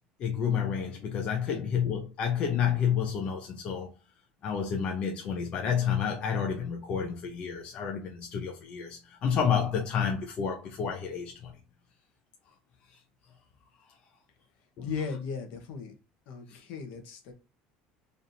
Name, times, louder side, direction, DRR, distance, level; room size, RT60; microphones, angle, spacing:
voice 1, 0.2-3.9 4.4-11.5 14.8-14.9 16.5-16.6, left 7 dB, 35° left, 0.6 m, -30 dB
voice 2, 14.8-15.9 16.3-17.3, left 6 dB, 55° left, 1.0 m, -37 dB
3.4 x 2.6 x 4.1 m
cardioid pair, 170°, 3 cm